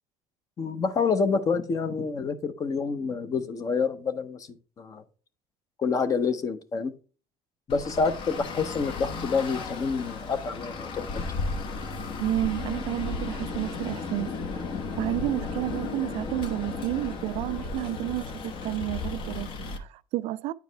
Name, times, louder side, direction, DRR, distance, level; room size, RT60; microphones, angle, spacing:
voice 1, 0.6-5.0 5.8-6.9 7.7-11.0, left 5 dB, 30° left, 0.7 m, -28 dB
Traffic noise roadway noise, 7.7-19.8, left 4 dB, 45° left, 1.0 m, -34 dB
voice 2, 12.2-14.7 15.0-20.5, right 15 dB, 60° right, 0.4 m, -31 dB
9.3 x 4.7 x 3.3 m
cardioid pair, 160°, 12 cm